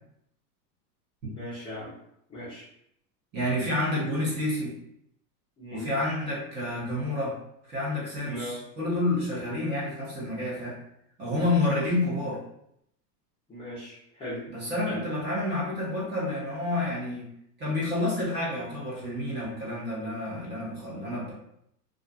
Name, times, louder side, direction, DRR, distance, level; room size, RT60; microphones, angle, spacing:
voice 1, 1.2-1.9 2.3-2.7 5.6-5.9 8.2-8.6 13.5-14.4 14.9-15.0, left 1 dB, 10° left, -12 dB, 0.6 m, -38 dB
voice 2, 3.3-4.7 5.7-7.3 7.7-10.8 11.2-12.4 14.5-17.3 17.6-21.3, left 1 dB, 20° right, -7 dB, 0.9 m, -29 dB
2.5 x 2.4 x 2.3 m, 0.75 s
supercardioid pair, 135°, 50 cm